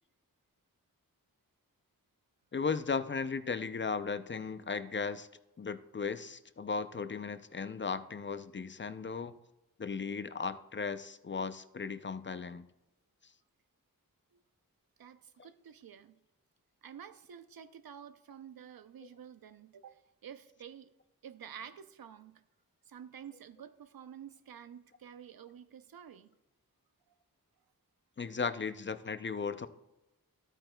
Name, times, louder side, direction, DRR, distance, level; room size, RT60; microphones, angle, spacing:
voice 1, 2.5-5.3 5.6-9.3 9.8-12.7 28.2-29.7, left 5 dB, 35° left, 0.4 m, -36 dB
voice 2, 15.0-16.2 16.8-20.9 21.2-22.4 22.9-26.3, right 8 dB, 85° right, 0.6 m, -50 dB
12.5 x 8.9 x 2.2 m
wide cardioid pair, 85°, 35 cm